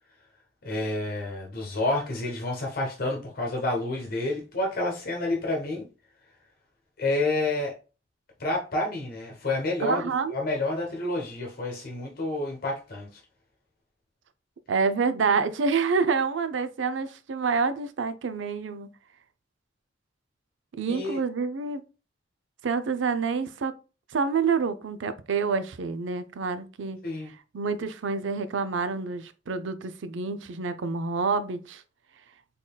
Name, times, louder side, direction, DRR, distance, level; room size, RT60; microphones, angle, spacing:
voice 1, 0.6-5.8 7.0-7.7 8.4-10.0 10.3-13.2 20.9-21.2 27.0-27.3, left 2 dB, 55° left, 1.0 m, -29 dB
voice 2, 9.8-10.4 14.7-18.9 20.8-21.8 22.6-23.7 24.1-27.0 27.5-31.8, right 5 dB, 85° right, 0.5 m, -27 dB
3.8 x 3.8 x 2.3 m
head